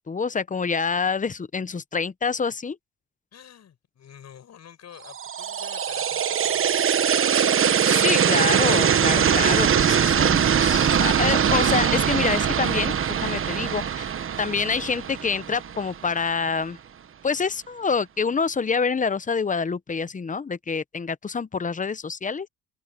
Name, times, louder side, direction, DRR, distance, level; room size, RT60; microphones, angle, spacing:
voice 1, 0.1-2.8 7.8-14.1 14.4-16.8 17.2-22.5, left 5 dB, 25° left, 0.9 m, -26 dB
voice 2, 3.3-7.6, left 9 dB, 60° left, 6.9 m, -48 dB
sound 1, 5.1-16.1, right 8 dB, 45° right, 1.2 m, -22 dB
cardioid pair, 90°, 30 cm